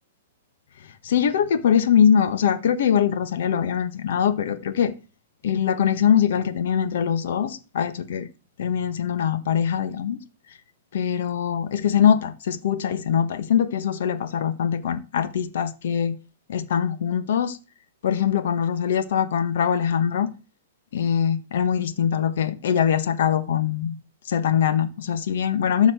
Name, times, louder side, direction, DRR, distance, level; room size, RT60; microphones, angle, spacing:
voice 1, 1.0-4.9 5.4-8.3 8.6-10.2 10.9-16.2 16.5-17.6 18.0-20.3 20.9-23.9 24.3-25.9, left 8 dB, 65° left, 1.5 m, -22 dB
13.0 x 5.7 x 7.9 m
hypercardioid pair, 160°, 0 cm